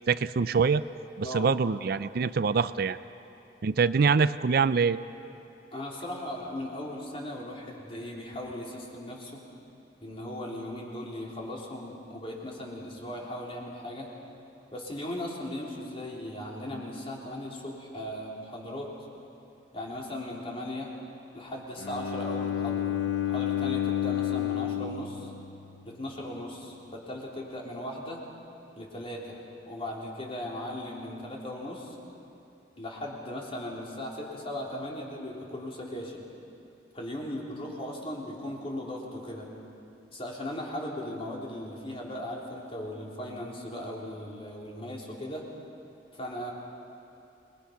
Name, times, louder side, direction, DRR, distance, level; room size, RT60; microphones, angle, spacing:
voice 1, 0.1-0.8 1.2-3.0 3.6-5.0, right 5 dB, 60° right, 14 dB, 0.4 m, -24 dB
voice 2, 5.7-9.4 10.0-14.1 14.7-18.9 19.7-20.9 21.3-22.9 23.3-25.3 25.9-28.2 28.8-32.0 32.8-36.2 36.9-39.5 40.1-45.4 46.1-46.5, left 1 dB, 35° left, -3 dB, 3.6 m, -38 dB
Bowed string instrument, 21.8-25.9, left 10 dB, 80° left, 0.6 m, -30 dB
26.0 x 21.0 x 5.8 m, 2.8 s
head